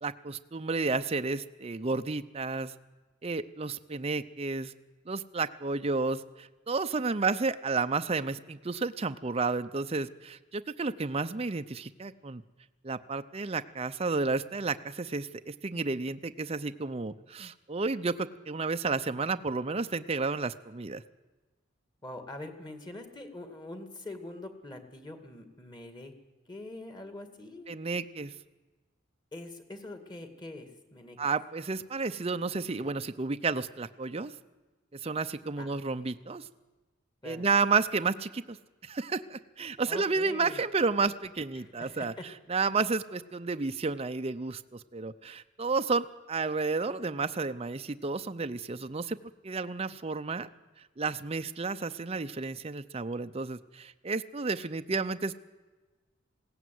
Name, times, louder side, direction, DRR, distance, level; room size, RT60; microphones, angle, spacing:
voice 1, 0.0-2.7 3.2-4.7 5.1-12.4 12.8-21.0 27.7-28.3 31.2-34.3 35.0-36.4 37.2-38.6 38.8-42.1 42.5-49.2 49.4-50.5 51.0-55.3, right 4 dB, 30° right, 9 dB, 0.6 m, -31 dB
voice 2, 22.0-26.1 26.5-27.8 29.3-31.2 35.6-35.7 37.2-37.5 39.8-40.6 41.5-42.2, left 2 dB, 20° left, 7 dB, 2.3 m, -44 dB
20.5 x 16.5 x 9.4 m, 1.2 s
head